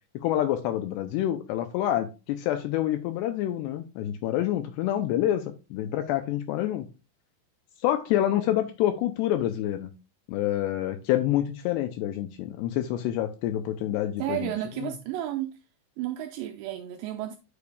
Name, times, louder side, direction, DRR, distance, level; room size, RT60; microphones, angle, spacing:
voice 1, 0.2-5.4 5.7-6.9 7.8-9.9 10.3-14.5 14.8-14.9, left 12 dB, 85° left, 2.5 m, -27 dB
voice 2, 14.2-15.6 16.0-17.4, right 13 dB, 85° right, 2.4 m, -32 dB
9.4 x 6.9 x 2.3 m
omnidirectional pair, 5.4 m